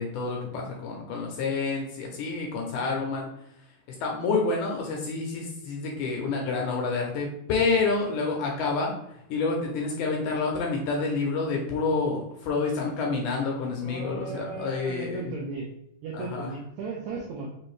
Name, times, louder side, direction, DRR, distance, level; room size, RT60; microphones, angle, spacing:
voice 1, 0.0-3.3 4.0-15.2 16.2-16.5, left 4 dB, 75° left, 0 dB, 1.9 m, -28 dB
voice 2, 13.8-15.7 16.0-17.5, right 3 dB, 85° right, -2 dB, 1.6 m, -36 dB
5.5 x 2.6 x 3.1 m, 0.78 s
omnidirectional pair, 4.0 m